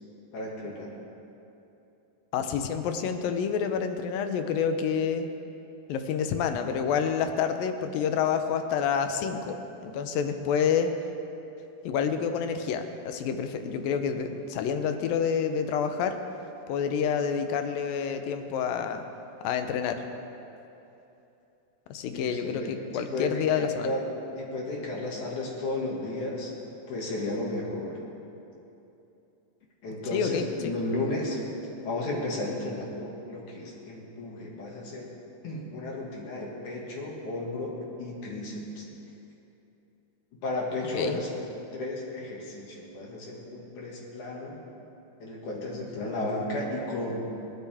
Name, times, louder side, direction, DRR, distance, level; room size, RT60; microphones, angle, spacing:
voice 1, 0.3-0.9 22.1-26.5 26.9-28.0 29.8-31.4 31.8-35.1 35.4-38.9 40.4-41.3 41.7-44.6 45.2-47.2, left 2 dB, 60° left, -3 dB, 3.3 m, -33 dB
voice 2, 2.3-5.3 5.9-10.9 11.8-16.2 16.7-19.0 19.4-20.0 21.9-23.9 30.1-30.7 40.9-41.2, left 7 dB, 80° left, 7 dB, 2.6 m, -28 dB
29.5 x 10.5 x 3.6 m, 2.9 s
omnidirectional pair, 4.1 m